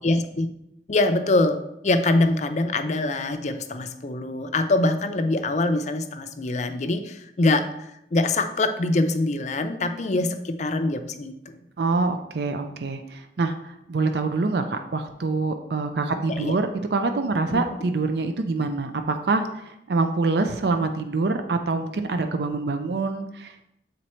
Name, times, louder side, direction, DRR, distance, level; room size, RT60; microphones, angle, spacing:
voice 1, 0.0-0.5 0.9-7.7 8.1-11.6 16.3-16.5 17.5-17.6, left 2 dB, 40° left, 8 dB, 0.5 m, -24 dB
voice 2, 11.8-23.7, right 3 dB, 65° right, 7 dB, 0.5 m, -25 dB
7.5 x 4.0 x 4.3 m, 0.83 s
head